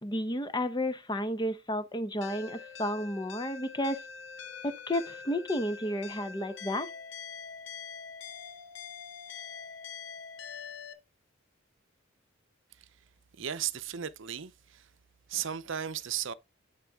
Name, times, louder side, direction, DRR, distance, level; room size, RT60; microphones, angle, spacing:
voice 1, 0.0-4.0 4.6-6.9, left 1 dB, 20° left, 0.9 m, -32 dB
sound 1, 2.2-10.9, left 6 dB, 60° left, 1.1 m, -44 dB
voice 2, 13.4-14.9 15.3-16.3, right 9 dB, 65° right, 0.7 m, -35 dB
9.9 x 4.2 x 3.6 m
head